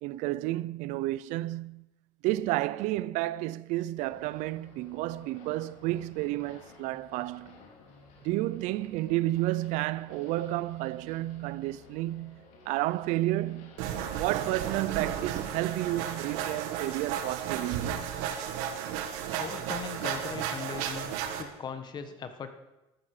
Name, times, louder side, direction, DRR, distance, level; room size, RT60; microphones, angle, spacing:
voice 1, 0.0-1.9 2.2-7.6 8.2-13.8 14.2-18.1, right 17 dB, 70° right, 0.5 m, -31 dB
sound 1, 4.0-16.6, left 4 dB, 75° left, 3.2 m, -55 dB
sound 2, 13.8-21.4, right 9 dB, 90° right, 1.5 m, -34 dB
voice 2, 19.4-22.5, left 6 dB, 35° left, 1.4 m, -39 dB
14.0 x 13.0 x 4.9 m
cardioid pair, 140°, 13 cm